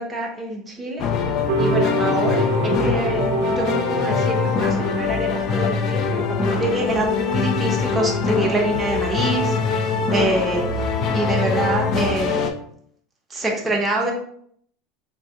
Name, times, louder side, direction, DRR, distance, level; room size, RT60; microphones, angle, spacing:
voice 1, 0.0-10.8 11.1-12.4 13.3-14.1, right 2 dB, 10° right, -2 dB, 0.7 m, -26 dB
sound 1, 1.0-12.5, left 5 dB, 35° left, 0.3 m, -23 dB
sound 2, 1.5-6.1, right 3 dB, 65° right, 0.3 m, -26 dB
3.5 x 2.6 x 2.7 m, 0.64 s
supercardioid pair, 165°, 0 cm